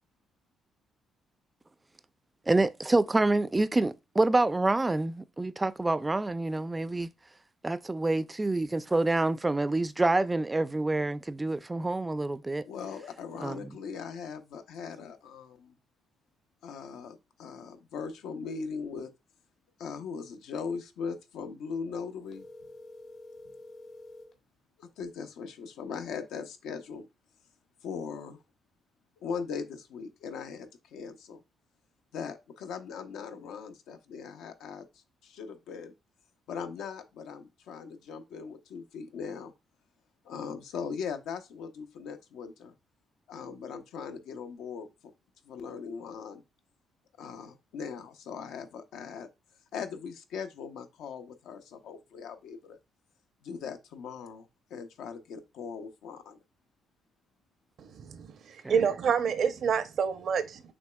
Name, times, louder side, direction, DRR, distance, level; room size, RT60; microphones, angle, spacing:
voice 1, 2.5-7.1 7.6-12.6 13.4-13.7 58.6-58.8, right 2 dB, 20° right, 0.3 m, -27 dB
voice 2, 12.6-15.7 16.6-19.1 19.8-22.4 24.8-27.1 27.8-28.4 29.2-31.4 32.1-34.9 35.2-35.9 36.5-39.5 40.2-42.7 43.3-44.9 45.4-46.4 47.2-49.3 49.7-52.8 53.4-56.4, left 6 dB, 85° left, 0.6 m, -39 dB
sound 1, 22.3-24.4, left 1 dB, 70° left, 1.2 m, -48 dB
voice 3, 57.8-60.6, right 7 dB, 65° right, 0.6 m, -28 dB
6.1 x 3.0 x 2.2 m
cardioid pair, 90°, 0 cm